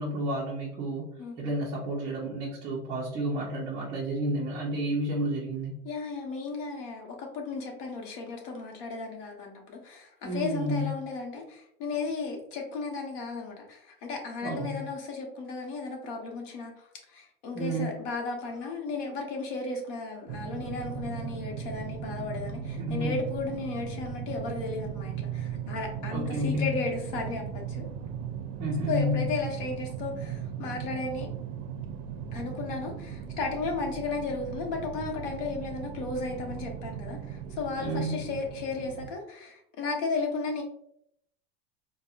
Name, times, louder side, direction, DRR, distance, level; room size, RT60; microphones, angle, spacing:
voice 1, 0.0-5.8 10.2-11.1 14.4-14.9 17.5-18.0 22.8-23.2 26.1-26.8 28.6-29.3 37.8-38.2, equal, 15° right, -6 dB, 0.4 m, -31 dB
voice 2, 5.8-27.9 28.9-31.3 32.3-40.6, left 4 dB, 60° left, 1 dB, 0.9 m, -34 dB
sound 1, 20.3-39.1, right 8 dB, 90° right, 0.5 m, -37 dB
4.1 x 2.0 x 2.3 m, 0.71 s
supercardioid pair, 170°, 29 cm